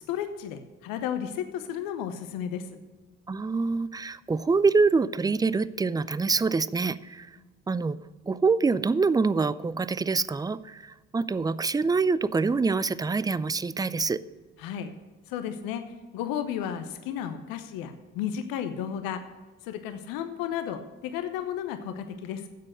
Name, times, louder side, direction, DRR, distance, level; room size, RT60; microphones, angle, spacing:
voice 1, 0.1-2.7 14.6-14.9 15.3-15.9 16.1-19.2 19.6-22.5, left 9 dB, 70° left, 9 dB, 0.9 m, -33 dB
voice 2, 3.3-7.3 7.7-8.0 8.2-14.2, right 4 dB, 10° right, 17 dB, 0.4 m, -25 dB
10.5 x 7.6 x 6.4 m, 1.3 s
hypercardioid pair, 45°, 36 cm